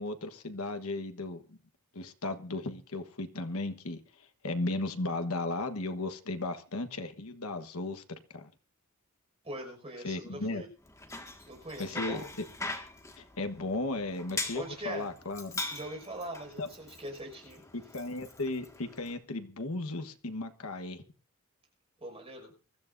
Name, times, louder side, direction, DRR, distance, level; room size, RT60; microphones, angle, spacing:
voice 1, 0.0-1.6 1.9-8.5 10.0-10.6 11.8-12.2 13.2-15.6 16.6-16.7 17.7-21.0, left 2 dB, 80° left, 8 dB, 1.3 m, -35 dB
voice 2, 9.4-10.7 11.4-12.3 14.5-15.1 15.7-17.6 22.0-22.5, right 1 dB, 25° right, 3 dB, 5.8 m, -42 dB
Bicycle, 10.8-19.2, left 2 dB, 15° left, 1.8 m, -42 dB
23.5 x 13.5 x 2.6 m, 0.38 s
head